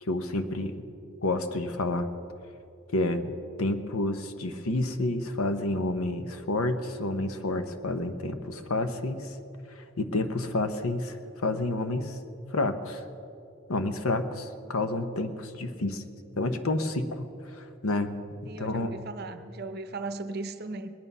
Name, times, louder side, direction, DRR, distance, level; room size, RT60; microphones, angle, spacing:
voice 1, 0.0-0.7 1.2-2.1 2.9-3.3 3.6-9.3 9.8-12.2 12.5-13.0 13.7-16.0 16.4-18.9, left 2 dB, 85° left, 9 dB, 1.0 m, -29 dB
voice 2, 18.5-20.9, right 3 dB, 45° right, 9 dB, 0.7 m, -37 dB
20.5 x 9.5 x 5.5 m, 2.6 s
head